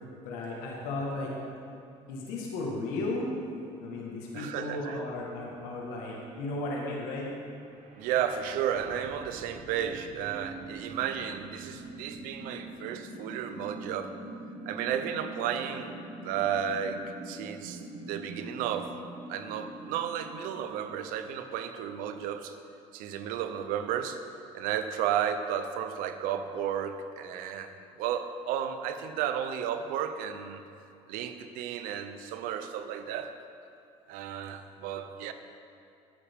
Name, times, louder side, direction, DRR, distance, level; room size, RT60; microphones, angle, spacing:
voice 1, 0.2-1.3 2.1-3.4 3.8-7.3, left 2 dB, 85° left, -3 dB, 1.7 m, -35 dB
voice 2, 4.3-5.0 8.0-14.1 14.7-15.9 16.2-18.9 19.3-22.6 22.9-24.2 24.5-30.6 31.1-33.3 34.1-35.3, right 9 dB, 80° right, 9 dB, 0.7 m, -33 dB
sound 1, 7.6-21.6, right 2 dB, 55° right, 1.6 m, -44 dB
12.0 x 8.8 x 3.7 m, 2.6 s
cardioid pair, 100°, 14 cm